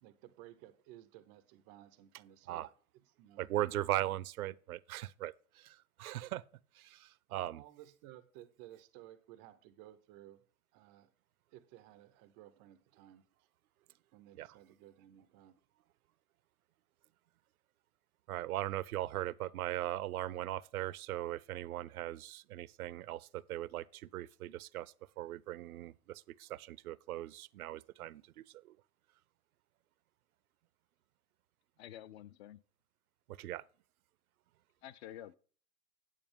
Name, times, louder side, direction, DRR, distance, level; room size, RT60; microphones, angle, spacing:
voice 1, 0.0-2.7 2.9-3.5 7.3-10.4 10.7-11.1 11.5-13.2 14.1-15.6, right 13 dB, 20° right, 0.4 m, -56 dB
voice 2, 3.4-6.4 6.8-7.6 14.4-14.5 18.3-28.8 33.3-33.6, right 14 dB, 70° right, 0.6 m, -39 dB
voice 3, 31.8-32.6 34.8-35.3, left 11 dB, 45° left, 0.5 m, -49 dB
9.1 x 8.4 x 3.5 m
hypercardioid pair, 125°, 45 cm